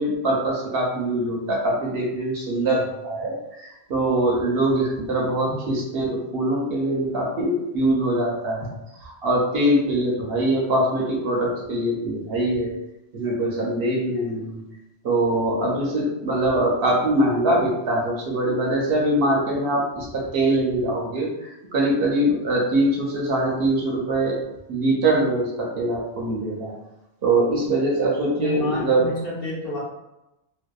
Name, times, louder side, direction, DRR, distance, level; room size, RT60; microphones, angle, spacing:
voice 1, 0.0-3.3 3.6-8.7 9.2-12.7 13.1-14.6 15.0-21.3 21.7-24.4 24.7-26.7 27.2-29.1, right 1 dB, 65° right, -2 dB, 0.8 m, -23 dB
voice 2, 28.4-29.8, left 1 dB, 60° left, -6 dB, 1.0 m, -30 dB
2.7 x 2.1 x 2.2 m, 0.92 s
omnidirectional pair, 1.1 m